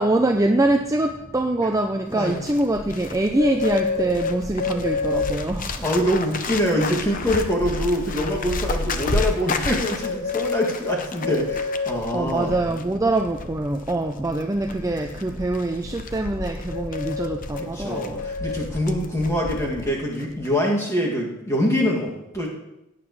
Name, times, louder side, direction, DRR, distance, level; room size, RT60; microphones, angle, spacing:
voice 1, 0.0-5.8 12.1-18.3, right 2 dB, 15° right, 4 dB, 0.4 m, -24 dB
Bird, 2.1-19.9 20.2-20.5, left 3 dB, 35° left, 0.7 m, -29 dB
voice 2, 2.1-2.4 5.8-12.5 17.6-22.5, equal, 15° left, -3 dB, 2.1 m, -24 dB
17.0 x 9.2 x 3.1 m, 0.92 s
head